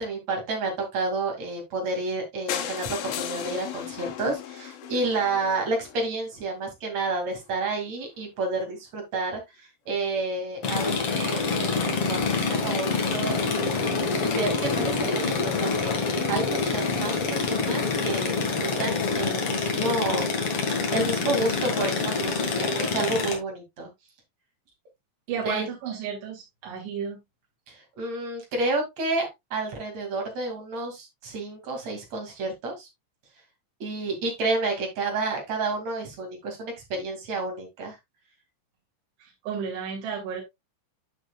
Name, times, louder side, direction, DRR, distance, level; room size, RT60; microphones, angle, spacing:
voice 1, 0.0-20.3 20.9-23.9 25.4-25.7 27.7-32.9 33.8-38.0, right 3 dB, 45° right, 3.0 m, -30 dB
sound 1, 2.5-6.4 7.0-7.1 7.4-7.5 7.7-7.8 8.0-8.1, left 11 dB, 85° left, 3.6 m, -36 dB
sound 2, 10.6-23.4, left 4 dB, 60° left, 1.5 m, -26 dB
voice 2, 25.3-27.2 39.2-40.4, right 7 dB, 75° right, 4.7 m, -33 dB
10.5 x 6.1 x 2.3 m
omnidirectional pair, 5.4 m